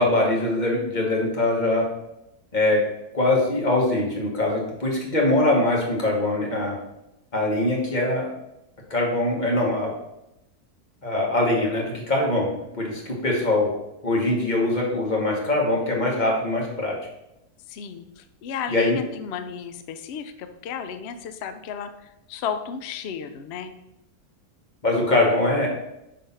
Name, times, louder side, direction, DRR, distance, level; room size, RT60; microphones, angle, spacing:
voice 1, 0.0-1.9 2.5-2.8 3.1-6.8 7.3-8.3 8.9-9.9 11.0-13.7 14.0-16.9 18.7-19.0 24.8-25.7, left 2 dB, 30° left, -2 dB, 1.4 m, -22 dB
voice 2, 17.7-23.7, left 7 dB, 70° left, 9 dB, 0.6 m, -34 dB
5.7 x 3.4 x 5.5 m, 0.87 s
omnidirectional pair, 1.7 m